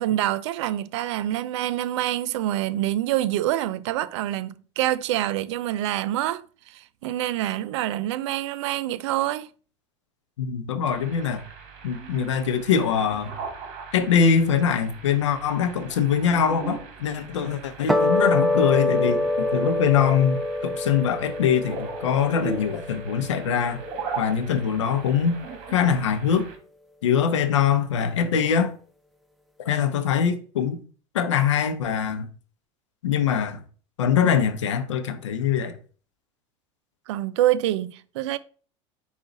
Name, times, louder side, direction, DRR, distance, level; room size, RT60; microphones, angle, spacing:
voice 1, 0.0-9.5 37.1-38.4, right 13 dB, 75° right, 0.4 m, -26 dB
voice 2, 10.4-11.4 11.8-13.3 13.9-23.8 24.2-25.4 25.7-26.5 27.0-28.7 29.6-30.8 31.1-32.3 33.0-33.6 34.0-35.7, left 7 dB, 90° left, 0.7 m, -23 dB
sound 1, 10.9-26.6, right 5 dB, 60° right, 1.3 m, -39 dB
sound 2, 17.9-24.4, left 1 dB, ahead, 0.4 m, -26 dB
5.1 x 2.4 x 3.9 m
hypercardioid pair, 90°, 15 cm